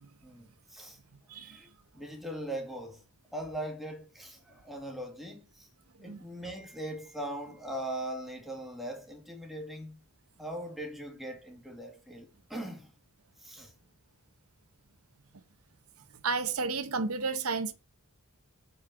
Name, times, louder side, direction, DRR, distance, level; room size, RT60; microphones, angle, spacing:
voice 1, 0.2-1.0 1.4-1.7 1.9-3.0 3.3-5.7 6.0-10.0 10.4-12.9 13.4-13.7, right 1 dB, ahead, 2.3 m, -40 dB
voice 2, 1.3-1.6 6.1-6.2 16.2-17.7, right 4 dB, 85° right, 1.0 m, -32 dB
8.7 x 5.4 x 5.7 m
head